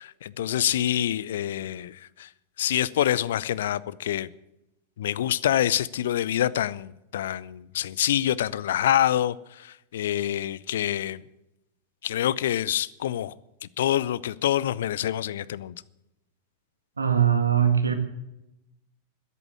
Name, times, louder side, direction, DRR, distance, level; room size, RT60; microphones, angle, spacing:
voice 1, 0.0-2.3 2.6-4.3 5.0-11.2 12.0-13.3 13.8-15.8, left 11 dB, 60° left, 0.6 m, -26 dB
voice 2, 17.0-17.9, right 8 dB, 75° right, 1.9 m, -21 dB
13.0 x 10.5 x 8.8 m
figure-of-eight pair, 90°, 0 cm